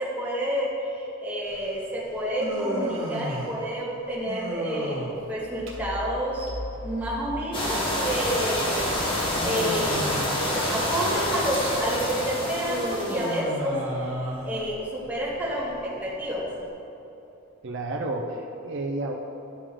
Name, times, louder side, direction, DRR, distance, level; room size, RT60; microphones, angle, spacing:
voice 1, 0.0-6.5 6.8-10.0 10.4-13.7 14.4-16.5, equal, 10° right, -7 dB, 1.6 m, -29 dB
Human voice, 1.4-16.7, equal, 85° right, 1.5 m, -35 dB
sound 1, 5.2-13.5 13.8-16.4, equal, 85° left, 1.2 m, -43 dB
sound 2, 7.5-13.4, left 1 dB, 25° left, 1.2 m, -27 dB
voice 2, 17.6-19.1, right 2 dB, 60° right, 0 dB, 0.6 m, -31 dB
11.5 x 5.0 x 3.7 m, 2.9 s
head